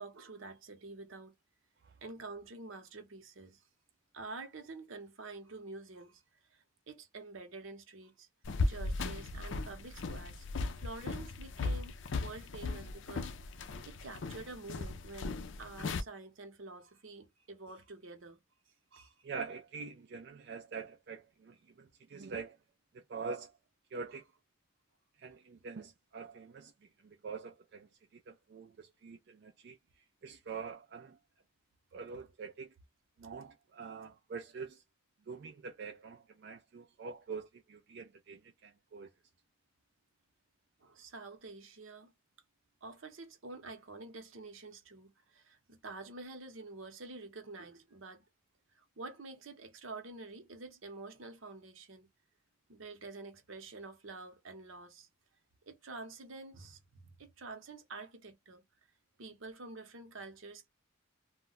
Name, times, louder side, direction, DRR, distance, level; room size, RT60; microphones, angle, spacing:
voice 1, 0.0-1.3 2.0-3.6 4.1-6.2 6.5-8.3 8.7-13.3 13.6-18.4 18.9-19.1 40.8-42.1 42.8-48.2 48.7-52.1 52.7-55.1 55.7-58.6 59.2-60.7, right 3 dB, 70° right, 0.8 m, -48 dB
sound 1, 8.4-16.0, left 3 dB, 60° left, 0.4 m, -37 dB
voice 2, 19.2-22.6 22.9-23.5 23.9-24.2 25.2-31.2 31.9-32.7 33.2-34.8 35.3-39.1, right 5 dB, 50° right, 0.3 m, -45 dB
2.2 x 2.1 x 3.8 m
head